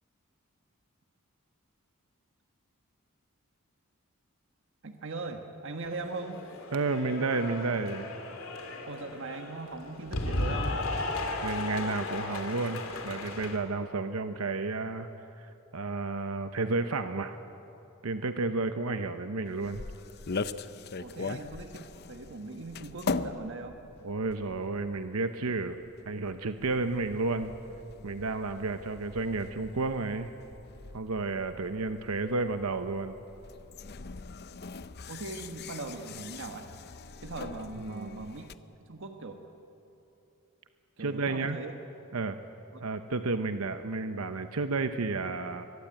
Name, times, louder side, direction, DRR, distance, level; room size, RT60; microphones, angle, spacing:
voice 1, 4.8-6.4 8.8-10.7 18.6-18.7 20.9-23.8 31.5-31.6 35.1-36.7 37.2-38.5 38.8-39.4 41.0-41.7, right 3 dB, 60° right, 5 dB, 1.4 m, -40 dB
Cheering / Applause, 5.8-13.6, left 2 dB, 70° left, 2.9 m, -35 dB
voice 2, 6.7-8.1 11.4-15.1 15.4-17.4 18.0-19.8 21.2-21.3 24.0-25.8 26.1-27.5 28.0-30.3 30.9-33.1 37.8-38.2 41.0-41.6 42.1-42.4 42.8-45.7, right 3 dB, 90° right, 8 dB, 0.9 m, -31 dB
sound 1, 19.5-38.6, left 4 dB, 50° left, 0.7 m, -41 dB
22.5 x 22.5 x 8.9 m, 2.9 s
head